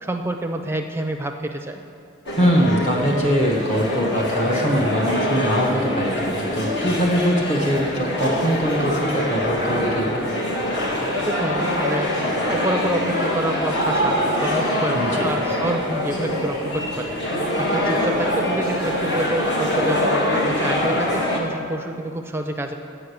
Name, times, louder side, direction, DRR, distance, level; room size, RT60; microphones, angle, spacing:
voice 1, 0.0-1.8 11.2-12.1 12.5-22.7, right 1 dB, 10° right, 5 dB, 0.5 m, -28 dB
sound 1, 2.3-21.4, left 1 dB, 55° left, 1.3 m, -24 dB
voice 2, 2.4-10.1 14.9-15.3, equal, 35° left, -2 dB, 1.0 m, -22 dB
8.4 x 6.0 x 8.1 m, 2.4 s
head